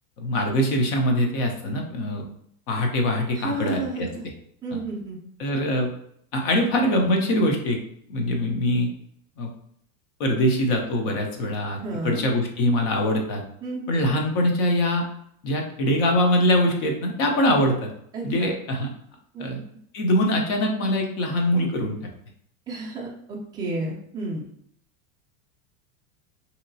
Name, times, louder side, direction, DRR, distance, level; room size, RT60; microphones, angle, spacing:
voice 1, 0.2-2.2 2.7-4.1 5.4-5.9 6.3-7.8 8.1-8.9 9.4-9.5 10.2-13.4 13.9-15.0 15.4-17.9 18.2-18.9 19.4-19.6 19.9-22.1, left 1 dB, 35° left, 2 dB, 0.6 m, -23 dB
voice 2, 3.3-4.2 4.6-5.2 11.8-12.2 13.6-14.1 18.1-18.5 19.3-19.5 22.7-24.4, right 2 dB, 10° right, -4 dB, 0.4 m, -31 dB
2.9 x 2.8 x 2.7 m, 0.68 s
supercardioid pair, 150°, 43 cm